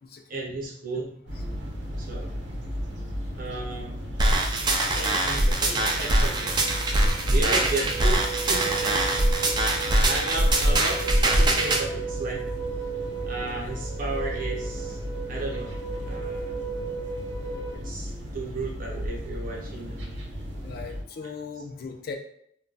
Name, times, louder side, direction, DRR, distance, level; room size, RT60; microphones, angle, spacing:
voice 1, 0.3-1.2 1.9-2.3 3.4-4.0 4.8-6.6 6.9-9.0 10.1-12.4 13.2-15.0 15.3-15.7 16.1-16.6 17.7-20.2, right 3 dB, 50° right, -2 dB, 0.8 m, -34 dB
sound 1, 1.3-21.0, equal, 80° right, 0.7 m, -35 dB
sound 2, 4.2-11.8, right 1 dB, 25° right, 0.3 m, -23 dB
sound 3, 5.6-17.8, right 5 dB, 20° left, 0.6 m, -36 dB
voice 2, 20.6-22.2, left 5 dB, 55° left, 4 dB, 0.4 m, -38 dB
2.2 x 2.2 x 3.8 m, 0.68 s
head